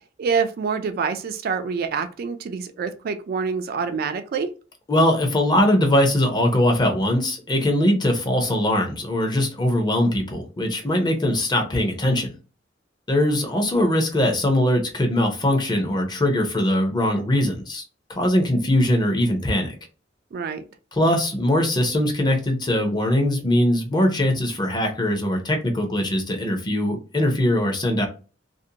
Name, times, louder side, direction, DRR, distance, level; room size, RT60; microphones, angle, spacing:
voice 1, 0.2-4.5 20.3-20.6, right 5 dB, 55° right, 9 dB, 0.3 m, -26 dB
voice 2, 4.9-12.3 13.1-17.8 18.1-19.7 20.9-28.1, left 1 dB, 25° left, 2 dB, 0.6 m, -21 dB
2.5 x 2.1 x 2.7 m, 0.35 s
head